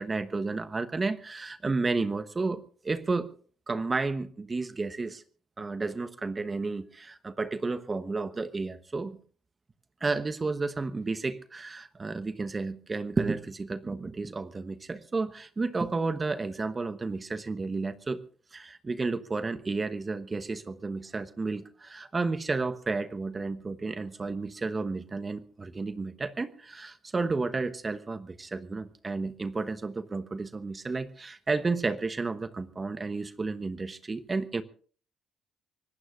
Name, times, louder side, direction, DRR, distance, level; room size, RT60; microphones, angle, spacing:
voice 1, 0.0-3.3 3.7-5.2 5.6-9.2 10.0-18.2 18.5-34.6, right 3 dB, 30° right, 12 dB, 1.1 m, -32 dB
24.5 x 19.0 x 2.5 m, 0.43 s
hypercardioid pair, 55°, 0 cm